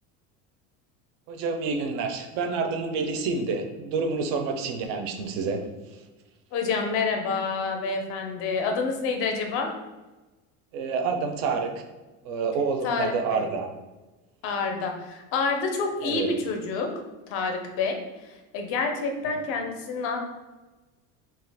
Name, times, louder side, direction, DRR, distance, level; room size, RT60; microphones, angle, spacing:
voice 1, 1.3-5.6 10.7-11.7 12.3-13.7 16.0-16.3, right 4 dB, 55° right, 5 dB, 0.4 m, -28 dB
voice 2, 6.5-9.7 12.8-13.5 14.4-16.9 17.3-20.2, left 4 dB, 40° left, 3 dB, 0.4 m, -28 dB
2.8 x 2.4 x 3.2 m, 1.2 s
cardioid pair, 180°, 35 cm